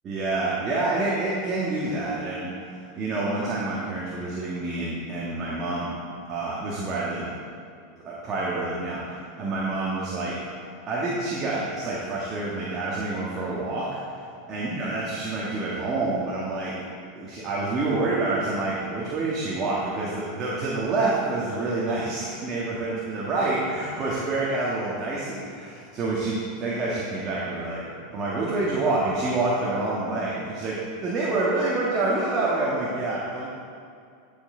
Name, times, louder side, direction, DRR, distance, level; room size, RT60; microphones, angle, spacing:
voice 1, 0.0-5.9 6.3-7.3 8.0-10.3 10.9-14.2 14.5-16.7 17.2-27.8 28.1-33.5, right 2 dB, 35° right, -6 dB, 1.7 m, -27 dB
12.5 x 5.7 x 3.9 m, 2.3 s
hypercardioid pair, 110°, 0 cm